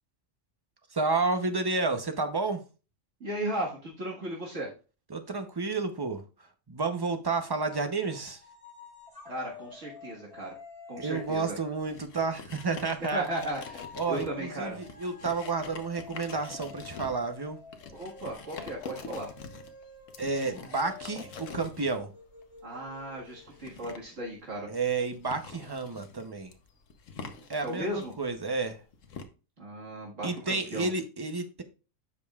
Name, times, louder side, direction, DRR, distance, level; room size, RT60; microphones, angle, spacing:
voice 1, 0.9-2.6 5.1-6.2 6.7-8.4 11.0-13.3 14.0-17.6 20.2-22.1 24.7-26.5 27.5-28.8 30.2-31.6, right 3 dB, 25° right, 0.6 m, -31 dB
voice 2, 3.2-4.7 9.3-10.6 10.9-11.5 13.0-13.8 14.1-14.8 17.9-19.3 22.6-24.7 27.6-28.1 29.6-30.9, right 1 dB, 75° right, 2.1 m, -36 dB
sound 1, 7.7-12.0 12.5-23.9, left 5 dB, 25° left, 1.5 m, -49 dB
sound 2, 11.1-29.2, left 5 dB, 75° left, 1.3 m, -46 dB
15.0 x 5.3 x 2.4 m
omnidirectional pair, 1.3 m